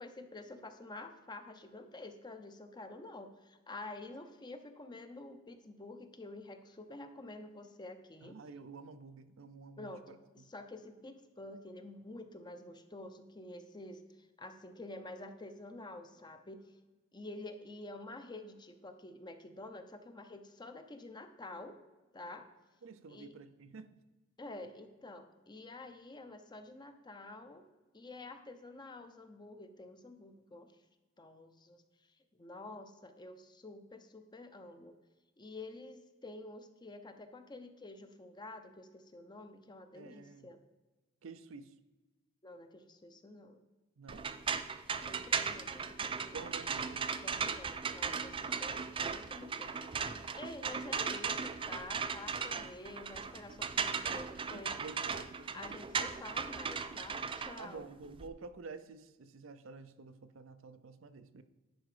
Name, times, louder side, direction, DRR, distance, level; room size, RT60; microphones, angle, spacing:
voice 1, 0.0-8.4 9.8-16.8 17.1-21.7 22.1-22.5 23.1-23.3 24.4-27.7 27.9-30.7 31.2-31.8 32.4-34.9 35.4-40.6 42.4-43.6 45.0-46.5 47.2-49.9 50.3-54.7 55.5-57.9, left 2 dB, 20° left, 7 dB, 0.6 m, -49 dB
voice 2, 8.2-10.4 22.8-23.9 39.9-40.5 41.2-41.7 44.0-44.5 46.3-47.0 54.0-54.2 54.5-55.8 57.6-61.4, right 4 dB, 75° right, 11 dB, 0.6 m, -50 dB
sound 1, 44.1-58.3, right 6 dB, 25° right, 0.4 m, -37 dB
10.5 x 4.8 x 4.9 m, 1.2 s
head